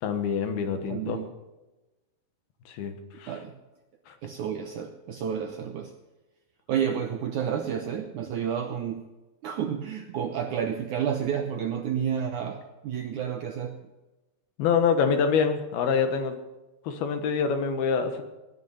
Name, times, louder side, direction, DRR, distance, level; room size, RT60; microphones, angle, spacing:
voice 1, 0.0-1.2 2.7-3.3 4.1-4.2 14.6-16.3 16.8-18.2, left 6 dB, 75° left, 7 dB, 3.2 m, -26 dB
voice 2, 0.9-1.3 3.3-3.6 4.2-6.0 6.7-9.1 9.4-13.8, right 8 dB, 75° right, 5 dB, 1.8 m, -30 dB
18.5 x 11.0 x 5.6 m, 1.1 s
omnidirectional pair, 4.6 m